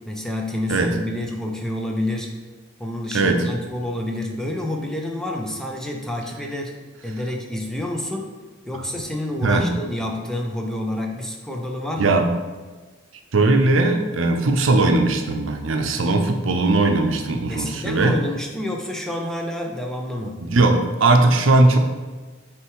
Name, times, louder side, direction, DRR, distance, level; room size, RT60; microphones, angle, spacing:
voice 1, 0.1-2.3 2.8-6.7 7.0-8.3 8.6-12.2 17.5-20.4, left 1 dB, 5° left, 0 dB, 0.6 m, -28 dB
voice 2, 12.0-12.3 13.3-18.2 20.4-21.8, right 2 dB, 80° right, 5 dB, 0.6 m, -18 dB
6.4 x 3.4 x 4.7 m, 1.3 s
head